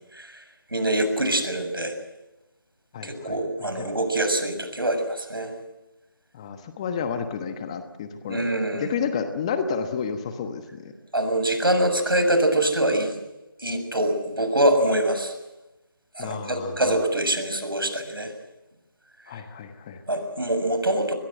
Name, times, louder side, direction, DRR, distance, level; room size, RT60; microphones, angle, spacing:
voice 1, 0.7-1.9 3.0-5.5 8.3-8.9 11.1-13.2 13.6-15.3 16.1-18.3 20.1-21.1, right 1 dB, 80° right, 8 dB, 6.9 m, -24 dB
voice 2, 2.9-3.9 6.3-10.9 16.2-17.0 19.3-20.0, left 6 dB, 15° left, 8 dB, 1.2 m, -31 dB
23.0 x 22.0 x 7.7 m, 0.98 s
figure-of-eight pair, 160°, 12 cm